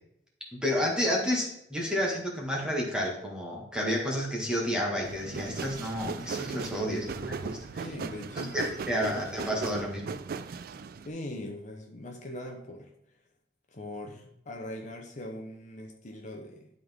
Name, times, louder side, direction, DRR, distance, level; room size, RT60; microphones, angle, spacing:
voice 1, 0.5-7.9 8.4-10.2, equal, 5° right, -2 dB, 1.8 m, -31 dB
sound 1, 5.0-11.1, right 5 dB, 55° right, 0.3 m, -38 dB
voice 2, 6.9-7.4 7.8-8.7 9.1-9.2 11.0-12.9 13.7-16.7, left 1 dB, 45° left, 2 dB, 0.9 m, -41 dB
11.5 x 4.0 x 3.6 m, 0.78 s
head